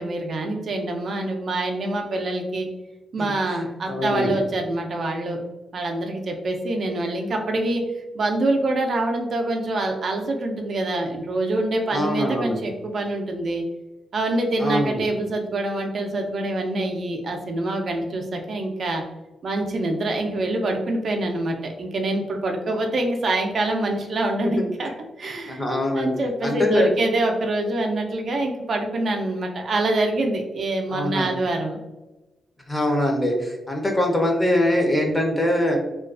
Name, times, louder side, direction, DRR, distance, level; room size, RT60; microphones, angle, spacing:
voice 1, 0.0-2.7 3.1-5.4 5.7-7.8 8.1-13.6 14.1-19.0 19.4-24.9 25.2-25.6 25.9-31.8, right 2 dB, 60° right, 3 dB, 0.4 m, -25 dB
voice 2, 3.9-4.3 11.9-12.6 14.6-15.0 24.4-24.7 25.5-26.1 26.4-26.9 30.9-31.3 32.7-35.8, left 1 dB, 15° left, 1 dB, 0.6 m, -23 dB
2.4 x 2.2 x 2.3 m, 1.1 s
cardioid pair, 95°, 0 cm